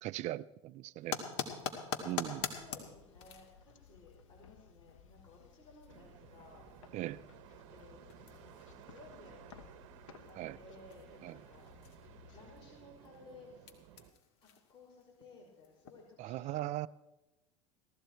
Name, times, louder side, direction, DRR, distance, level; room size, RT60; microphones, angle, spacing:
voice 1, 0.0-1.2 2.0-2.5 6.9-7.2 10.4-10.6 11.2-11.4 16.2-16.9, right 16 dB, 45° right, 0.6 m, -39 dB
sound 1, 1.0-16.2, left 7 dB, 65° left, 2.3 m, -47 dB
sound 2, 1.9-13.6, left 7 dB, 90° left, 1.4 m, -60 dB
voice 2, 2.6-6.7 7.7-9.7 10.2-11.6 12.3-13.5 14.0-14.1 14.4-16.7, left 3 dB, 30° left, 5.2 m, -58 dB
sound 3, 5.9-14.1, right 12 dB, 65° right, 1.1 m, -57 dB
18.0 x 14.0 x 4.5 m
hypercardioid pair, 95°, 16 cm